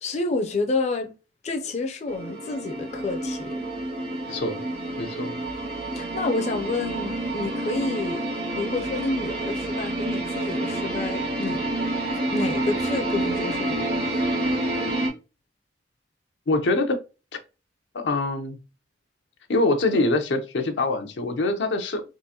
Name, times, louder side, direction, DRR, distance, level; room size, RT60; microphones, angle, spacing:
voice 1, 0.0-1.1 1.4-3.7 6.0-8.2 8.5-11.6 12.3-14.2, left 3 dB, 40° left, 0.5 m, -29 dB
sound 1, 2.1-15.1, right 1 dB, 60° right, 1.4 m, -28 dB
voice 2, 4.3-4.6 5.0-5.4 16.5-17.0 17.9-18.6 19.5-22.0, left 2 dB, 85° left, 0.6 m, -24 dB
3.7 x 2.5 x 2.7 m
head